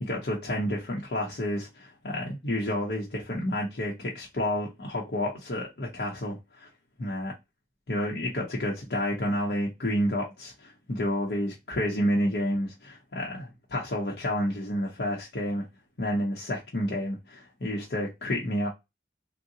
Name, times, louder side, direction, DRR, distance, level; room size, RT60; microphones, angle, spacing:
voice 1, 0.0-6.7 7.0-7.3 7.9-15.7 16.0-18.7, left 1 dB, 70° left, 0.8 m, -30 dB
3.7 x 2.1 x 2.7 m
head